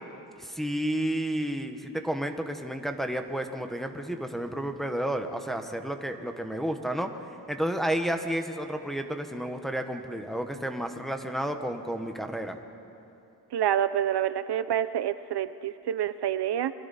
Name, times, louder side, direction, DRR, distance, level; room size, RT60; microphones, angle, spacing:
voice 1, 0.4-7.1 7.5-12.6, right 1 dB, ahead, 4 dB, 1.0 m, -31 dB
voice 2, 13.5-16.7, right 10 dB, 75° right, 13 dB, 0.6 m, -27 dB
29.5 x 22.5 x 4.2 m, 2.8 s
wide cardioid pair, 150°, 40 cm